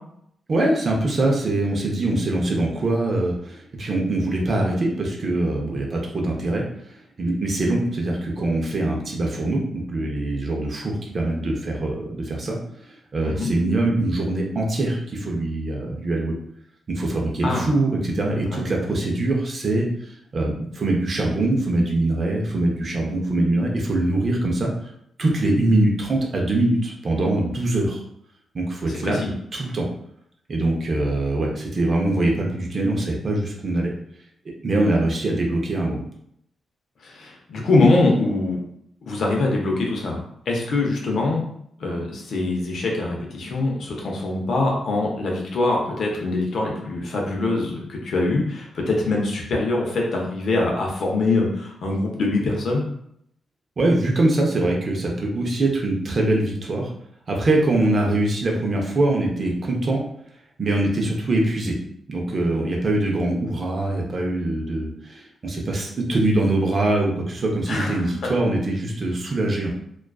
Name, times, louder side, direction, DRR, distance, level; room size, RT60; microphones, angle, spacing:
voice 1, 0.5-6.6 6.9-16.3 16.9-24.7 25.2-28.0 28.5-29.2 29.5-29.9 30.5-33.9 34.6-36.1 53.8-56.9 57.3-60.0 60.6-61.7 62.1-69.7, right 2 dB, 45° right, 0 dB, 0.5 m, -23 dB
voice 2, 37.0-38.6 39.0-41.5 41.8-52.8 67.7-68.0 68.2-68.3, left 2 dB, 65° left, -1 dB, 0.6 m, -23 dB
2.4 x 2.2 x 2.3 m, 0.72 s
cardioid pair, 115°, 0 cm